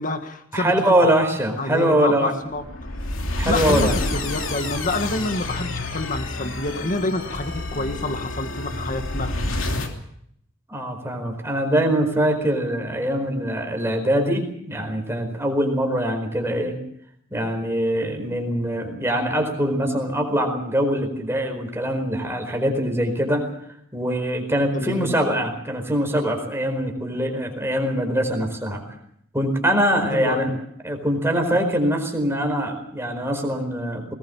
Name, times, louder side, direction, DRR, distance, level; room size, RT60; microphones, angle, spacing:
voice 1, 0.0-0.7 1.0-1.1 1.6-2.6 3.5-9.4 24.7-25.2 30.1-30.6, left 2 dB, 40° left, 7 dB, 1.8 m, -28 dB
voice 2, 0.5-2.3 3.4-3.9 10.7-16.8 17.3-23.5 23.9-28.8 29.3-30.5 30.8-34.1, equal, 10° right, 3 dB, 4.7 m, -23 dB
sound 1, 2.5-9.9, left 2 dB, 65° left, 3.0 m, -28 dB
20.5 x 20.0 x 7.1 m, 0.70 s
head